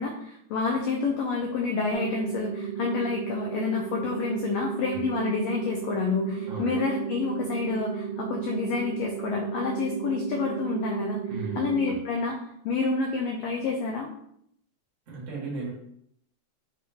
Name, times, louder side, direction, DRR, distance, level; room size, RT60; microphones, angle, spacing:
voice 1, 0.0-11.2 11.5-12.4 12.6-14.1, left 4 dB, 90° left, 1 dB, 1.4 m, -28 dB
sound 1, 1.9-11.9, right 9 dB, 80° right, 1.9 m, -34 dB
voice 2, 11.3-12.0 15.1-15.7, right 3 dB, 55° right, -4 dB, 0.8 m, -35 dB
5.4 x 2.8 x 3.4 m, 0.71 s
omnidirectional pair, 3.6 m